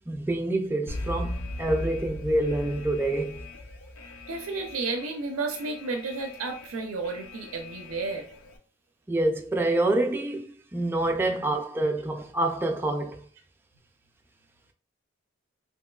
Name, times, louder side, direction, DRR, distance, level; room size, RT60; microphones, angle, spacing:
voice 1, 0.1-3.4 9.1-10.4 10.7-13.3, right 2 dB, 10° right, 0.3 m, -27 dB
Alarm, 0.9-8.6, left 1 dB, 80° left, 0.5 m, -39 dB
voice 2, 4.3-8.3, right 3 dB, 90° right, 0.4 m, -32 dB
2.9 x 2.8 x 2.3 m
head